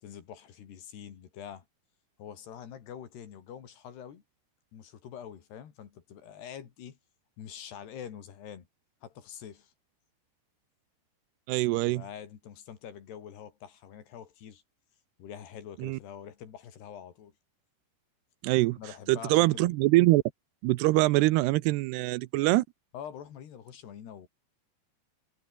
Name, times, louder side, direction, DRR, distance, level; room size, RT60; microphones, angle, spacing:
voice 1, 0.0-1.6 2.2-4.2 4.7-7.0 7.4-8.7 9.0-9.7 11.9-14.6 15.2-17.3 18.8-19.7 22.9-24.3, left 9 dB, 75° left, 4.9 m, -45 dB
voice 2, 11.5-12.0 15.8-16.0 18.4-18.8 19.1-20.2 20.6-22.6, right 19 dB, 90° right, 2.8 m, -24 dB
omnidirectional pair, 4.7 m